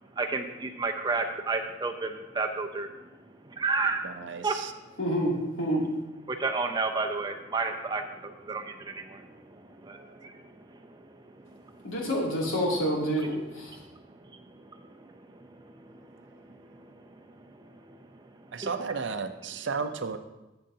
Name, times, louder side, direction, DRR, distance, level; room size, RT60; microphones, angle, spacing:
voice 1, 0.0-5.0 6.3-11.9 13.8-18.7, right 3 dB, 20° right, 5 dB, 0.6 m, -34 dB
voice 2, 4.0-4.7 18.5-20.2, right 5 dB, 60° right, 8 dB, 0.6 m, -33 dB
voice 3, 5.0-5.8 11.8-13.8, equal, 85° left, -4 dB, 2.8 m, -28 dB
13.0 x 7.7 x 2.8 m, 1.0 s
head